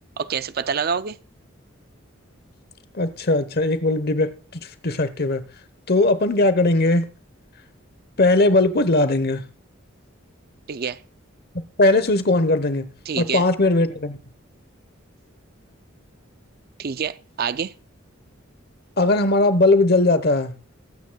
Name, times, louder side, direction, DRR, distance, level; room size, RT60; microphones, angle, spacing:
voice 1, 0.2-1.2 10.7-11.0 13.1-13.5 16.8-17.7, right 6 dB, 50° right, 0.4 m, -26 dB
voice 2, 2.9-5.4 5.9-7.1 8.2-9.4 11.8-12.9 13.2-14.2 19.0-20.5, left 2 dB, 50° left, 1.1 m, -19 dB
21.5 x 9.2 x 2.3 m
head